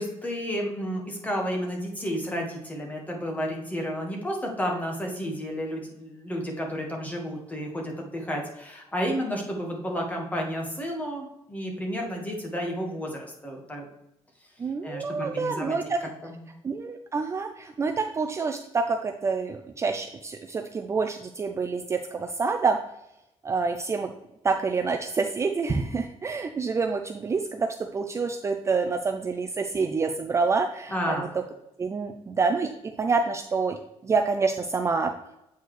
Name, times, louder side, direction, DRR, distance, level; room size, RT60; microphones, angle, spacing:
voice 1, 0.0-13.9 14.8-15.8 16.3-16.4 30.9-31.3, equal, 15° left, 0 dB, 1.5 m, -31 dB
voice 2, 14.6-16.0 16.6-22.8 23.4-24.1 24.4-31.3 31.8-32.7 33.0-33.8 34.0-35.1, right 4 dB, 25° right, 4 dB, 0.4 m, -27 dB
8.1 x 4.5 x 3.2 m, 0.85 s
cardioid pair, 140°, 11 cm